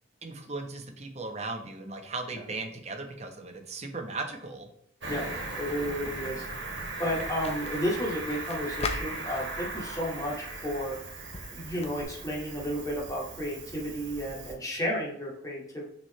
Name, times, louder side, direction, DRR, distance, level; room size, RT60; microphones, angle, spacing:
voice 1, 0.2-4.7, right 3 dB, 35° right, 4 dB, 1.1 m, -37 dB
Cricket, 5.0-14.5, right 2 dB, 70° right, 2.1 m, -38 dB
voice 2, 5.6-6.4 7.0-11.0 11.5-15.9, equal, 20° left, -3 dB, 2.2 m, -32 dB
sound 1, 5.9-12.0, left 4 dB, 35° left, 0.6 m, -42 dB
6.0 x 5.7 x 3.3 m, 0.72 s
head